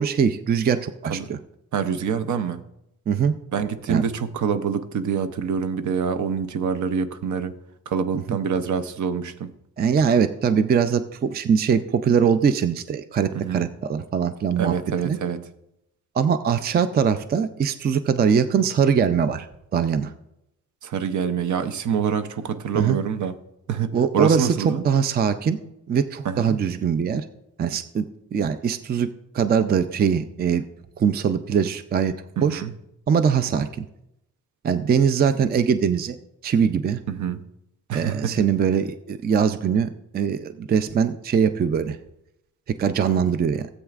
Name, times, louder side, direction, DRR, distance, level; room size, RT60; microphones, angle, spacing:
voice 1, 0.0-1.4 3.1-3.3 3.9-4.1 8.3-8.4 9.8-14.7 15.0-15.2 16.2-19.5 19.7-20.1 22.7-23.0 23.9-25.6 25.9-27.3 27.6-28.1 28.3-29.1 29.3-30.6 31.0-32.1 32.4-32.6 33.1-33.9 34.6-36.2 36.4-37.0 37.9-42.0 42.7-43.7, right 7 dB, 30° right, 11 dB, 0.4 m, -22 dB
voice 2, 1.7-2.6 3.5-7.6 7.9-9.5 13.3-13.6 14.6-15.4 20.8-23.3 23.7-24.8 26.2-26.6 32.4-32.7 37.1-37.4 37.9-38.5, right 7 dB, 65° right, 11 dB, 0.7 m, -26 dB
16.5 x 8.0 x 2.4 m, 0.83 s
wide cardioid pair, 140°, 32 cm